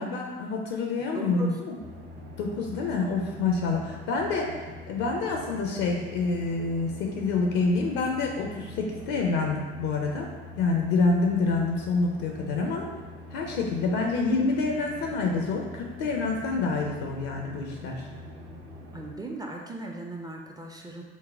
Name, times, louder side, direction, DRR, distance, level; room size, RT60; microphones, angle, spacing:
voice 1, 0.0-1.8 2.4-4.6 4.9-10.3 10.6-12.9 13.3-18.1, left 3 dB, 60° left, 1 dB, 0.6 m, -27 dB
voice 2, 1.1-1.6 18.9-21.0, right 2 dB, 10° right, 0 dB, 0.4 m, -38 dB
sound 1, 1.8-19.1, left 1 dB, 55° right, 0.7 m, -44 dB
4.0 x 2.1 x 3.5 m, 1.3 s
figure-of-eight pair, 55°, 31 cm